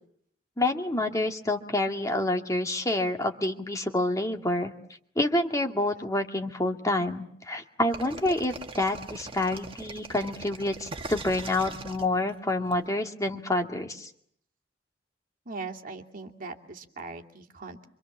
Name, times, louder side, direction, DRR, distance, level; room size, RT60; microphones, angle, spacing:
voice 1, 0.6-4.7 5.2-14.1, left 1 dB, 20° left, 3 dB, 2.2 m, -28 dB
sound 1, 7.9-12.7, right 3 dB, 30° right, 1.8 m, -40 dB
voice 2, 15.5-17.9, right 3 dB, 50° right, 2 dB, 2.6 m, -40 dB
26.5 x 26.0 x 7.3 m, 0.67 s
head